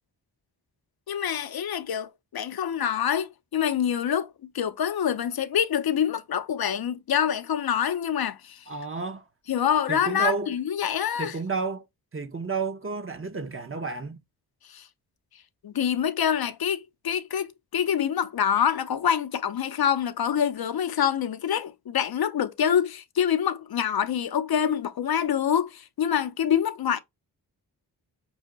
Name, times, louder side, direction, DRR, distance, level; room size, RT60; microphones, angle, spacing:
voice 1, 1.1-8.6 9.5-11.3 14.7-14.9 15.6-27.0, left 8 dB, 60° left, 0.6 m, -26 dB
voice 2, 8.7-9.2 9.9-10.5 11.2-11.8 12.1-14.2, right 4 dB, 30° right, 0.8 m, -31 dB
6.1 x 2.1 x 3.8 m
cardioid pair, 60°, 42 cm